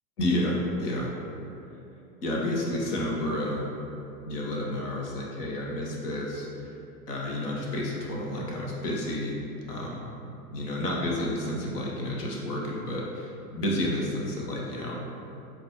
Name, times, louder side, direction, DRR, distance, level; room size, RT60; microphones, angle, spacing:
voice 1, 0.2-1.1 2.2-3.7 4.2-6.7 7.1-9.4 9.7-10.0 10.5-15.0, left 1 dB, 75° left, -3 dB, 0.8 m, -30 dB
5.8 x 2.2 x 2.8 m, 2.9 s
figure-of-eight pair, 90°, 48 cm